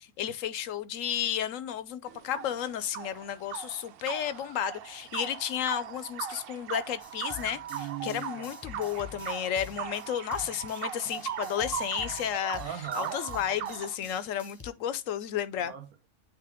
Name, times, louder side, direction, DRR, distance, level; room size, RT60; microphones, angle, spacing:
voice 1, 0.2-7.6 8.0-12.6 12.9-15.7, left 10 dB, 70° left, 0.9 m, -32 dB
sound 1, 2.1-14.0, right 9 dB, 65° right, 0.6 m, -39 dB
sound 2, 7.0-14.7, left 6 dB, 15° left, 0.9 m, -48 dB
voice 2, 7.7-8.5 12.6-13.2 15.6-16.1, right 10 dB, 80° right, 1.6 m, -40 dB
8.8 x 3.2 x 3.5 m
omnidirectional pair, 1.5 m